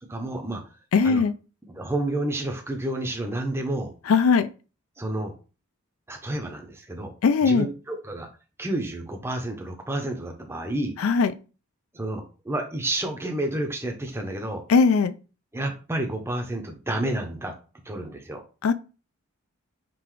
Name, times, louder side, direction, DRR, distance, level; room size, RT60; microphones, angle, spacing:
voice 1, 0.1-0.6 1.0-1.2 1.7-3.9 5.0-5.3 6.1-7.1 7.4-8.3 8.6-10.9 11.9-14.6 15.5-17.5 17.9-18.4, right 1 dB, 10° right, 0.6 m, -30 dB
voice 2, 0.9-1.3 4.1-4.5 7.2-7.7 11.0-11.3 14.7-15.1 18.6-18.7, left 5 dB, 75° left, 0.4 m, -19 dB
3.8 x 2.4 x 4.5 m
head